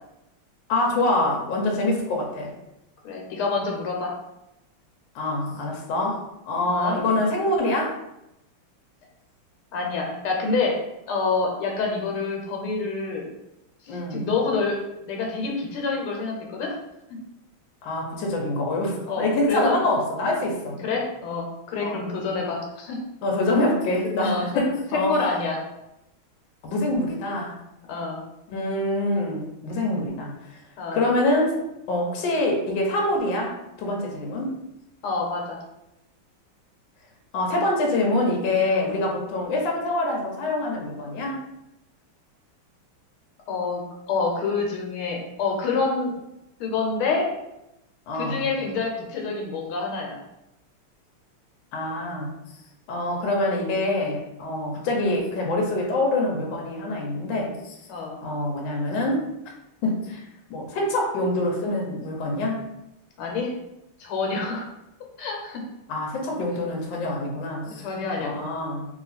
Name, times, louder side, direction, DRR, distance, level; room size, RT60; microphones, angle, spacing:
voice 1, 0.7-2.5 5.1-7.9 13.9-14.3 17.8-20.8 21.8-22.0 23.2-25.2 26.6-27.5 28.5-30.3 30.9-31.6 31.9-34.6 37.3-41.4 48.1-48.4 51.7-52.3 52.9-57.8 58.2-59.2 59.8-60.2 60.5-62.6 65.9-67.9 68.2-68.9, left 2 dB, 70° left, 0 dB, 1.4 m, -25 dB
voice 2, 3.0-4.1 6.6-7.0 9.7-10.8 11.1-13.3 13.9-14.8 15.1-16.7 17.1-17.2 19.1-19.8 20.8-23.0 24.0-25.6 27.9-28.2 30.8-31.0 35.0-35.6 43.5-46.1 46.6-47.3 48.1-50.2 57.9-58.2 63.2-63.5 64.0-64.7 65.2-65.6 67.8-68.5, left 4 dB, 90° left, 0 dB, 1.7 m, -27 dB
3.2 x 3.0 x 4.0 m, 0.89 s
omnidirectional pair, 2.3 m